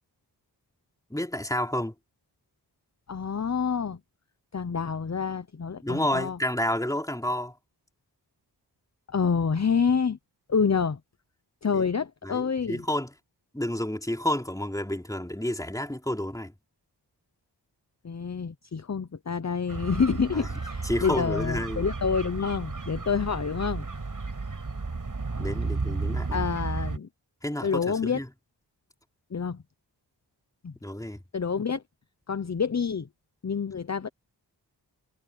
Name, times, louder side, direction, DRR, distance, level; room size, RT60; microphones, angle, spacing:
voice 1, 1.1-1.9 5.8-7.5 11.7-11.9 12.2-13.1 13.5-16.5 20.3-20.5 20.8-21.9 25.4-26.4 27.4-28.3 30.8-31.2, left 1 dB, 10° left, 3.4 m, -30 dB
voice 2, 3.1-4.0 4.5-6.4 9.1-10.2 10.5-11.0 11.6-12.8 18.0-23.8 26.3-27.1 27.6-28.2 29.3-29.6 30.6-30.7 31.3-31.8 32.3-33.1 33.4-34.1, left 6 dB, 40° left, 1.0 m, -27 dB
sound 1, 19.7-27.0, right 3 dB, 45° right, 7.2 m, -33 dB
cardioid pair, 60°, 43 cm